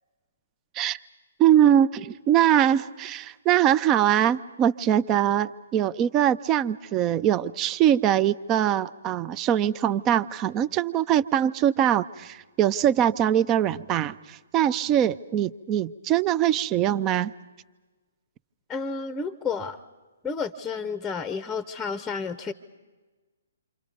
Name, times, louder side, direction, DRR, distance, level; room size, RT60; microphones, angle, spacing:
voice 1, 1.4-17.3, right 10 dB, 25° right, 16 dB, 0.6 m, -22 dB
voice 2, 18.7-19.8 20.2-22.5, left 5 dB, 10° left, 13 dB, 0.9 m, -31 dB
28.5 x 25.5 x 5.4 m, 1.3 s
figure-of-eight pair, 130°, 0 cm